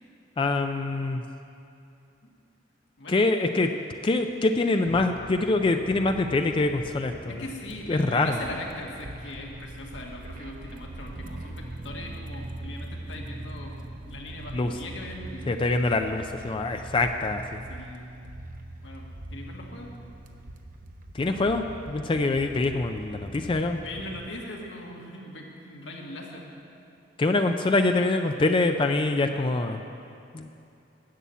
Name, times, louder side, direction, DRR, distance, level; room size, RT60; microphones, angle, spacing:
voice 1, 0.4-1.2 3.1-3.7 4.0-7.4 7.9-8.4 14.5-14.7 15.5-17.6 21.1-23.8 27.2-29.8 30.3-30.5, left 2 dB, 25° left, 6 dB, 0.4 m, -25 dB
sound 1, 4.8-24.3, right 1 dB, 45° right, 0.7 m, -42 dB
voice 2, 7.3-13.7 14.1-15.5 17.7-18.1 18.8-19.1 19.3-19.9 23.6-26.5, left 1 dB, 80° left, -1 dB, 1.8 m, -40 dB
11.0 x 7.0 x 8.3 m, 2.7 s
head